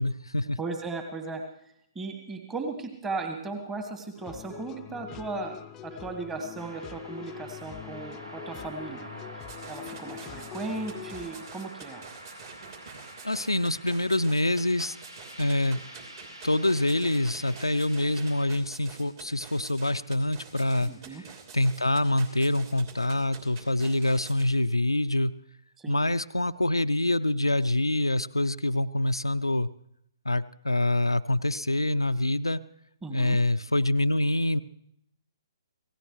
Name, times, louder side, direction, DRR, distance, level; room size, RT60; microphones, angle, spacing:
voice 1, 0.0-0.6 13.2-15.0 15.4-15.8 16.4-20.9 21.5-25.3 25.9-29.7 30.3-32.6 33.1-34.6, left 1 dB, 85° left, 10 dB, 0.5 m, -25 dB
voice 2, 0.6-1.4 1.9-5.6 5.8-9.1 9.7-12.0 20.8-21.2 25.8-26.0 33.0-33.4, right 3 dB, 10° right, 5 dB, 1.5 m, -36 dB
sound 1, 4.2-11.5, left 11 dB, 15° left, 0.5 m, -44 dB
sound 2, 6.5-18.5, right 1 dB, 75° right, 4.4 m, -46 dB
sound 3, 9.4-24.4, right 6 dB, 40° right, 3.0 m, -47 dB
25.5 x 17.5 x 3.2 m, 0.76 s
figure-of-eight pair, 130°, 2 cm